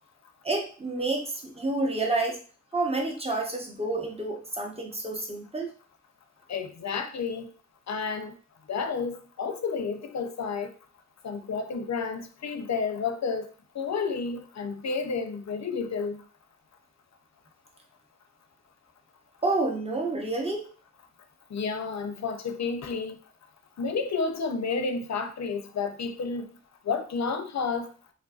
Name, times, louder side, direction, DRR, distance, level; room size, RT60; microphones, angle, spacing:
voice 1, 0.4-2.4 2.7-5.7 19.4-20.7, right 2 dB, 20° right, 0 dB, 0.7 m, -29 dB
voice 2, 6.5-7.5 7.9-8.4 8.7-10.7 11.2-13.5 13.7-16.2 21.5-23.2 23.8-26.5 26.8-27.9, left 5 dB, 65° left, 8 dB, 0.5 m, -31 dB
3.3 x 2.5 x 2.3 m, 0.40 s
wide cardioid pair, 80°, 30 cm